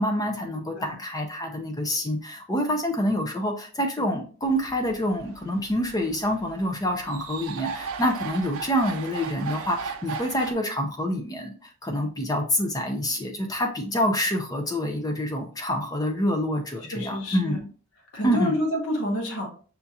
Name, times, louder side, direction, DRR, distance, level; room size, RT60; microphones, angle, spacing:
voice 1, 0.0-17.6 18.2-18.6, equal, 15° left, 3 dB, 0.5 m, -27 dB
sound 1, 4.4-10.5, right 5 dB, 75° right, 0.4 m, -37 dB
voice 2, 16.8-17.6 18.1-19.5, equal, 70° left, 0 dB, 1.2 m, -28 dB
5.6 x 2.8 x 2.4 m, 0.40 s
head